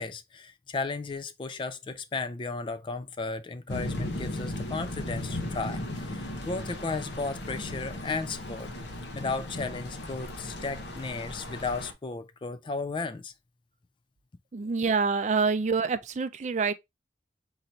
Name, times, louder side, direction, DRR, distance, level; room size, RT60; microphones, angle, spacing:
voice 1, 0.0-8.7 9.1-13.3, left 3 dB, 25° left, 0.3 m, -34 dB
sound 1, 3.7-11.9, left 1 dB, 80° left, 1.0 m, -36 dB
voice 2, 14.5-16.7, right 4 dB, 40° right, 0.4 m, -26 dB
4.0 x 2.8 x 4.3 m
head